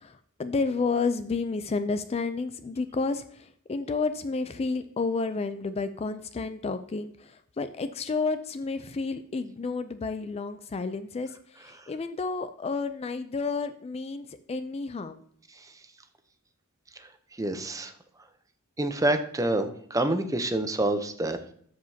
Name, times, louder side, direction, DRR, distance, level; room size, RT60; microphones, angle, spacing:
voice 1, 0.0-15.2, left 4 dB, 30° left, 11 dB, 0.4 m, -31 dB
voice 2, 17.4-17.9 18.8-21.5, right 1 dB, 15° right, 8 dB, 0.7 m, -27 dB
13.5 x 5.0 x 2.8 m, 0.62 s
head